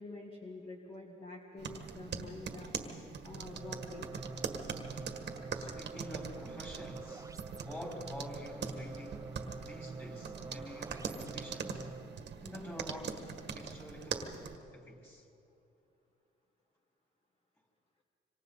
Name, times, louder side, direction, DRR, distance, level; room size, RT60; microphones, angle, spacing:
voice 1, 0.0-2.7 3.2-4.1, left 2 dB, 25° left, 1 dB, 1.8 m, -47 dB
sound 1, 1.6-14.6, right 6 dB, 60° right, 1.7 m, -42 dB
sound 2, 3.4-12.2, right 3 dB, 15° right, 0.5 m, -47 dB
voice 2, 5.3-7.3 7.6-11.9 12.4-13.2 13.5-14.3 14.7-15.3, left 1 dB, 10° left, -1 dB, 4.4 m, -47 dB
26.5 x 25.0 x 4.1 m, 2.7 s
cardioid pair, 90°, 20 cm